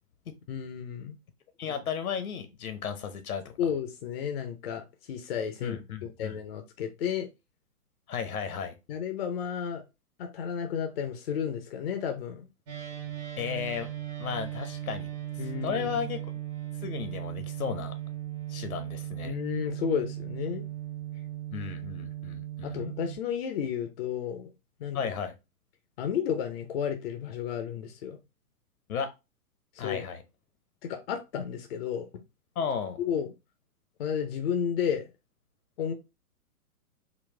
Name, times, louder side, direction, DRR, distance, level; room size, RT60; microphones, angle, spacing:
voice 1, 0.5-1.2 3.6-4.8 5.1-7.3 8.9-9.8 10.2-12.3 15.4-16.1 19.2-20.6 22.6-24.5 24.8-25.1 26.0-28.2 29.8-30.0 30.8-32.1 33.0-33.3 34.0-35.0 35.8-35.9, left 8 dB, 40° left, 0.6 m, -32 dB
voice 2, 1.6-3.5 5.6-6.4 8.1-8.8 13.4-13.9 14.2-15.1 15.6-16.2 16.8-17.9 18.5-19.3 21.5-22.8 24.9-25.3 28.9-29.1 29.8-30.2 32.6-33.0, left 7 dB, 65° left, 0.9 m, -34 dB
sound 1, 12.7-23.2, right 13 dB, 50° right, 1.4 m, -37 dB
4.0 x 2.3 x 3.2 m
hypercardioid pair, 125°, 45 cm